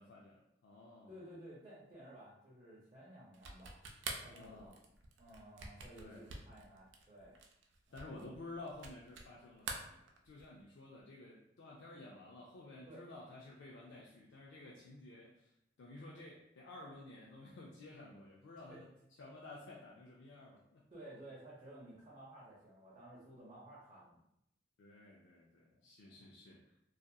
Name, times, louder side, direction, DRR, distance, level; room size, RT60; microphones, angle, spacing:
voice 1, 0.0-1.1 4.3-4.7 6.0-6.3 7.9-15.5 15.8-18.9 19.2-20.8 24.8-26.7, left 2 dB, 85° left, -3 dB, 0.4 m, -53 dB
voice 2, 1.1-3.8 4.2-4.7 5.2-7.4 7.9-8.1 12.9-13.0 18.7-18.8 20.9-24.2 25.7-26.2, right 1 dB, 30° right, -8 dB, 0.6 m, -55 dB
sound 1, 3.3-9.3 9.6-10.6, right 4 dB, 85° right, 0.4 m, -47 dB
2.8 x 2.4 x 2.2 m, 0.78 s
head